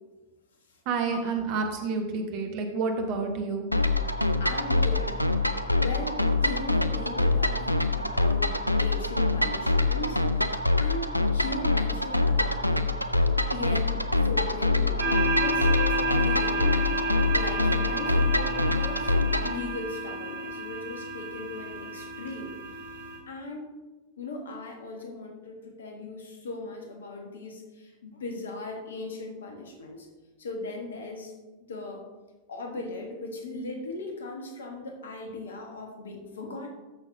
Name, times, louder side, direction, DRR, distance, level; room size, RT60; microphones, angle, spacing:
voice 1, 0.9-3.7, right 4 dB, 45° right, 4 dB, 1.3 m, -29 dB
sound 1, 3.7-19.6, left 2 dB, 90° left, 0.4 m, -25 dB
voice 2, 4.4-5.2 5.8-15.0 15.4-16.8 17.3-19.1 19.4-22.5 23.3-23.7 24.2-30.1 30.4-31.3 31.7-32.0 32.5-36.7, left 2 dB, 65° left, 2 dB, 1.4 m, -38 dB
sound 2, 15.0-23.2, right 1 dB, 75° right, 2.8 m, -31 dB
13.5 x 6.2 x 2.7 m, 1.2 s
figure-of-eight pair, 90°, 0 cm